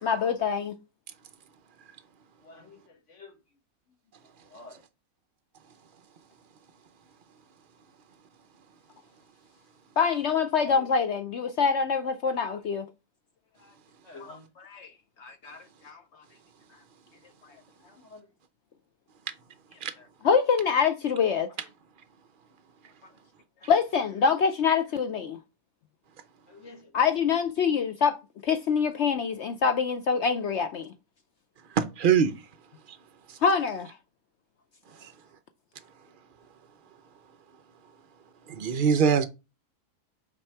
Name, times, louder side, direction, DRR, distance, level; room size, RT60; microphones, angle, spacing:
voice 1, 0.0-0.8 10.0-12.9 14.7-14.9 15.2-16.0 20.2-21.5 23.7-25.4 26.9-28.2 28.4-30.9 33.4-33.9, left 6 dB, 70° left, 0.6 m, -25 dB
voice 2, 2.4-3.4 4.2-4.8 10.6-10.9 14.0-14.5 18.0-18.3 23.1-23.2 26.5-27.2 34.9-35.1, left 3 dB, 50° left, 1.5 m, -48 dB
voice 3, 31.7-32.3 32.9-33.0 33.3-33.4 35.0-35.1 38.5-39.2, right 7 dB, 65° right, 0.5 m, -23 dB
6.0 x 4.6 x 4.5 m
omnidirectional pair, 1.7 m